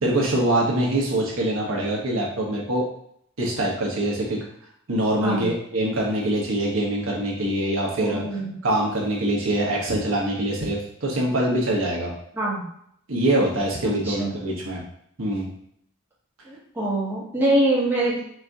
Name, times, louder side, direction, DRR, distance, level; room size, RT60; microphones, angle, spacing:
voice 1, 0.0-2.8 3.4-4.4 4.9-8.2 8.6-12.1 13.1-14.8 15.2-15.5, right 1 dB, 80° right, -2 dB, 1.1 m, -24 dB
voice 2, 8.0-8.5 12.3-12.6 13.8-14.3 16.4-18.2, right 1 dB, 10° right, -7 dB, 1.0 m, -24 dB
4.5 x 2.7 x 3.5 m, 0.69 s
head